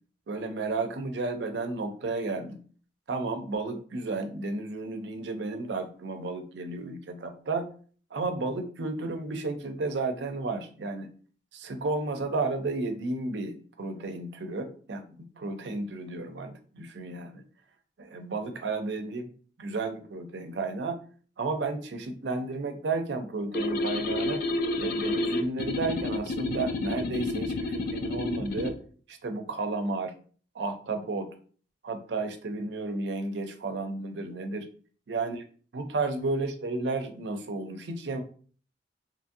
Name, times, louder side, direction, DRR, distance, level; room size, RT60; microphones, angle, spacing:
voice 1, 0.3-2.6 3.1-7.7 8.1-11.1 11.5-17.4 18.0-19.3 19.6-21.0 21.4-24.4 24.8-28.8 29.1-30.1 30.5-31.3 31.8-34.7 35.1-35.4 35.7-38.2, right 3 dB, 70° right, 7 dB, 0.5 m, -32 dB
sound 1, 23.5-28.8, left 2 dB, 55° left, 0.3 m, -30 dB
2.9 x 2.5 x 2.6 m, 0.43 s
head